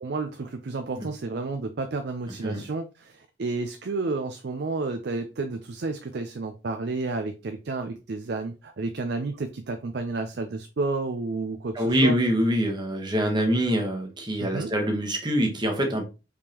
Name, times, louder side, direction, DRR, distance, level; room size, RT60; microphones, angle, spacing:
voice 1, 0.0-12.1 14.4-14.7, right 3 dB, 55° right, 8 dB, 0.5 m, -31 dB
voice 2, 11.7-16.0, equal, 25° right, 2 dB, 1.1 m, -24 dB
5.0 x 3.6 x 2.9 m, 0.30 s
head